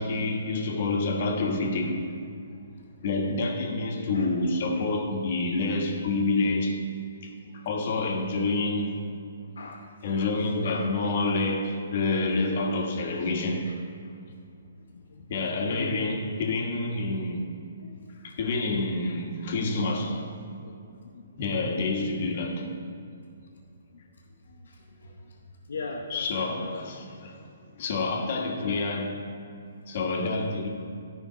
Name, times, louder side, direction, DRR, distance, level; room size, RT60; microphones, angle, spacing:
voice 1, 0.0-2.0 3.0-6.8 7.2-9.0 10.0-13.7 15.3-17.5 18.2-20.4 21.4-22.7 26.1-27.4 27.8-29.2 29.9-30.7, left 2 dB, 50° left, 1.3 m, -28 dB
voice 2, 2.5-3.0 4.1-4.4 7.3-7.7 7.9-8.0 9.4-11.0 13.6-14.2 14.7-16.1 17.8-18.2 20.6-21.4 22.7-22.8 23.9-26.7 29.6-30.0, left 3 dB, 85° left, 0.9 m, -42 dB
11.0 x 5.0 x 5.0 m
hypercardioid pair, 150°, 0 cm